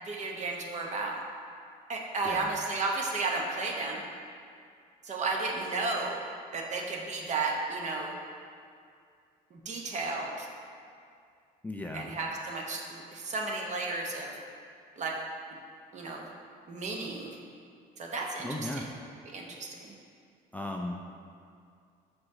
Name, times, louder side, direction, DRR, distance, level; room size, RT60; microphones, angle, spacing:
voice 1, 0.0-1.2 1.9-4.0 5.1-8.1 9.5-10.5 11.9-14.3 15.0-15.2 15.9-16.2 16.7-17.3 18.0-18.9 19.3-19.9, right 3 dB, 45° right, 0 dB, 0.9 m, -33 dB
voice 2, 11.6-12.0 18.4-18.9 20.5-21.0, left 1 dB, 10° left, 1 dB, 0.3 m, -36 dB
6.1 x 4.9 x 3.7 m, 2.3 s
cardioid pair, 110°, 17 cm